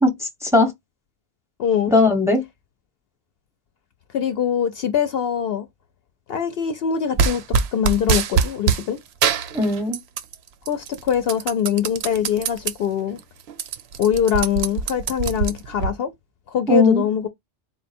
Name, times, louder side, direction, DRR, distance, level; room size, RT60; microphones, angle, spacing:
voice 1, 0.0-0.7 1.9-2.4 9.5-10.0 16.7-17.0, left 2 dB, 5° right, 0.8 m, -18 dB
voice 2, 1.6-1.9 4.1-5.7 6.3-9.0 10.7-13.2 14.0-16.1 16.5-17.3, left 8 dB, 65° left, 0.7 m, -23 dB
sound 1, 7.2-8.8 9.2-10.3 10.7-12.7 13.2-13.3 13.5-15.9, right 6 dB, 70° right, 0.8 m, -23 dB
4.0 x 2.2 x 4.1 m
omnidirectional pair, 1.2 m